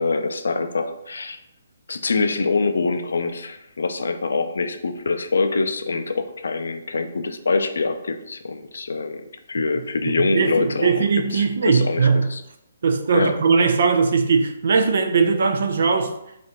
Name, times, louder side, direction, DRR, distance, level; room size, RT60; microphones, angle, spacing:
voice 1, 0.0-1.4 1.9-12.4 13.1-13.4, left 4 dB, 70° left, 0.4 m, -24 dB
voice 2, 10.0-12.3 12.8-16.1, right 5 dB, 60° right, 0.4 m, -19 dB
5.1 x 2.5 x 2.8 m
figure-of-eight pair, 140°, 0 cm